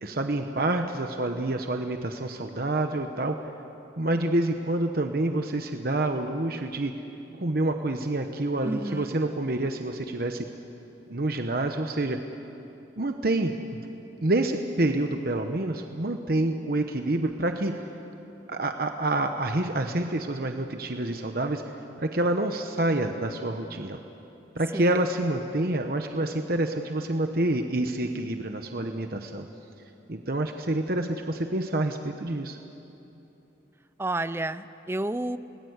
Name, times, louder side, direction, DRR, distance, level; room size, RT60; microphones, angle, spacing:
voice 1, 0.0-3.4 4.0-6.9 7.4-10.5 11.1-12.2 13.0-13.9 14.2-17.8 18.5-24.0 24.5-29.5 30.1-32.6, right 1 dB, 55° right, 5 dB, 1.0 m, -27 dB
voice 2, 8.6-9.1 24.7-25.0 34.0-35.4, right 1 dB, 15° right, 13 dB, 0.5 m, -30 dB
30.0 x 19.5 x 8.1 m, 2.9 s
head